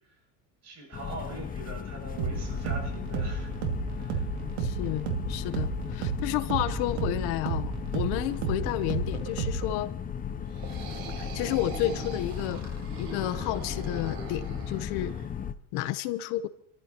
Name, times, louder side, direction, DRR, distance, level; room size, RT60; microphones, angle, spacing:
voice 1, 0.6-3.5 3.9-4.3 6.6-6.9, right 3 dB, 40° right, 7.3 m, -42 dB
sound 1, 0.9-15.5, left 7 dB, 20° left, 0.6 m, -36 dB
sound 2, 2.2-9.8, right 6 dB, 80° right, 2.4 m, -33 dB
voice 2, 4.4-9.9 11.2-15.1 15.7-16.5, left 14 dB, 65° left, 0.9 m, -31 dB
sound 3, 10.4-15.3, right 5 dB, 65° right, 5.0 m, -42 dB
28.0 x 14.0 x 2.9 m
supercardioid pair, 120°, 42 cm